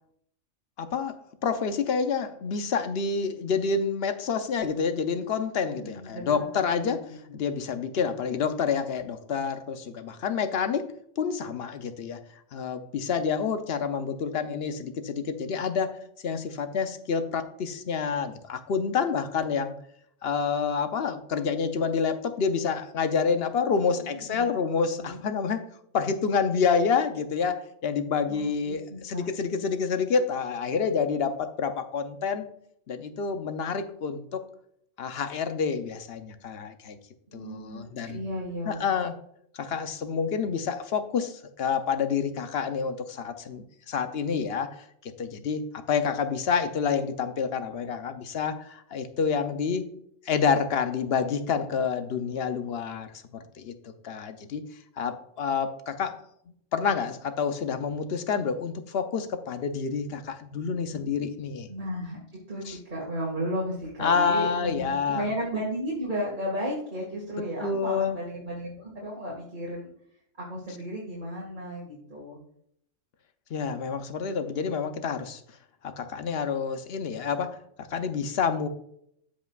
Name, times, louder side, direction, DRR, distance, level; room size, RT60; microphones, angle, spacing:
voice 1, 0.8-7.0 7.3-12.2 12.5-16.0 16.2-19.7 20.2-25.6 25.9-32.5 32.9-34.4 35.0-37.0 37.3-38.2 38.6-39.2 39.5-49.9 50.3-54.6 55.0-56.2 56.7-61.7 62.7-62.8 64.0-65.2 67.6-68.2 73.5-75.4 75.8-78.7, left 6 dB, 60° left, 9 dB, 0.9 m, -28 dB
voice 2, 5.7-7.0 23.9-24.4 24.9-25.2 28.3-29.3 37.3-38.8 61.7-62.2 62.5-69.9 70.4-72.4, equal, 40° right, -4 dB, 2.1 m, -34 dB
13.0 x 5.2 x 2.4 m, 0.69 s
omnidirectional pair, 1.3 m